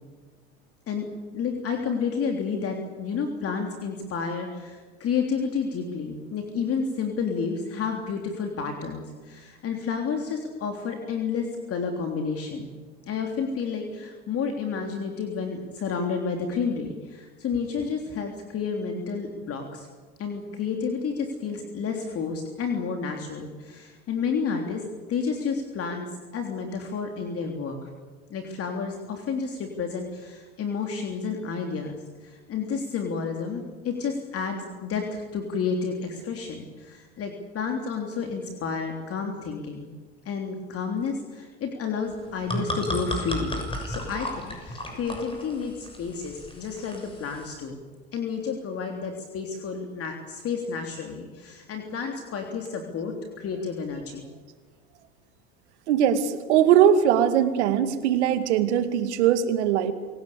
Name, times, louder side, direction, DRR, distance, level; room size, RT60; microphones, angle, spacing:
voice 1, 1.3-12.7 13.1-19.9 20.2-24.8 25.1-26.1 26.3-27.8 28.3-39.9 40.2-47.8 48.1-54.2, left 5 dB, 40° left, 3 dB, 3.4 m, -30 dB
sound 1, 42.1-47.6, left 1 dB, 15° left, 7.0 m, -34 dB
voice 2, 55.9-59.9, right 9 dB, 80° right, 9 dB, 2.4 m, -21 dB
27.0 x 17.5 x 8.6 m, 1.4 s
hypercardioid pair, 95°, 34 cm